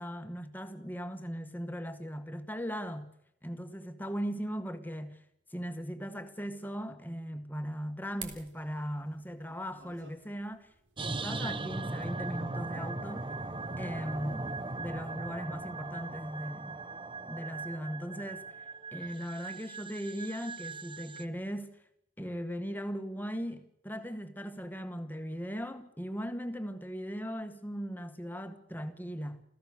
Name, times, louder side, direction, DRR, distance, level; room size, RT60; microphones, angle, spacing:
voice 1, 0.0-3.1 3.4-5.2 5.5-10.7 11.0-13.3 13.8-16.8 17.2-18.6 18.9-21.7 22.2-29.4, equal, 10° left, 1.7 m, -38 dB
sound 1, 8.2-16.5, right 6 dB, 80° right, 3.9 m, -55 dB
sound 2, 11.0-21.3, right 3 dB, 25° right, 0.9 m, -39 dB
28.5 x 15.5 x 6.8 m
head